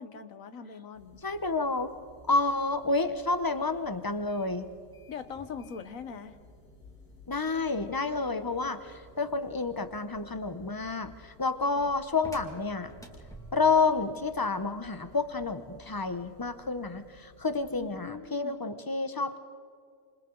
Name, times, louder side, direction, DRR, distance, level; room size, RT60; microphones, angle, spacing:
voice 1, 0.0-1.2 5.1-6.4 17.8-18.6, left 6 dB, 60° left, 10 dB, 1.4 m, -42 dB
sound 1, 0.9-18.1, left 3 dB, 80° left, 4.2 m, -57 dB
voice 2, 1.2-1.9 2.3-4.7 7.3-12.9 13.5-19.4, left 3 dB, 35° left, 10 dB, 0.3 m, -29 dB
sound 2, 4.1-13.9, right 1 dB, ahead, 1.9 m, -54 dB
28.0 x 27.0 x 3.9 m, 2.3 s
omnidirectional pair, 1.7 m